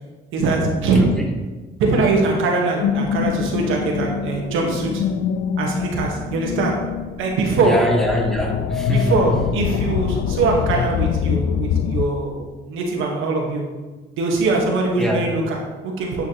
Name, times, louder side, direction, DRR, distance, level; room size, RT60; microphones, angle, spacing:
voice 1, 0.3-1.3 1.8-5.1 5.6-6.9 7.2-7.9 8.9-13.7 14.2-16.3, right 3 dB, 85° right, 0 dB, 1.4 m, -22 dB
sound 1, 2.8-12.1, left 8 dB, 70° left, 0.4 m, -24 dB
voice 2, 7.6-9.2 15.0-15.2, equal, ahead, 0 dB, 1.4 m, -22 dB
9.3 x 5.7 x 3.0 m, 1.3 s
cardioid pair, 90°, 20 cm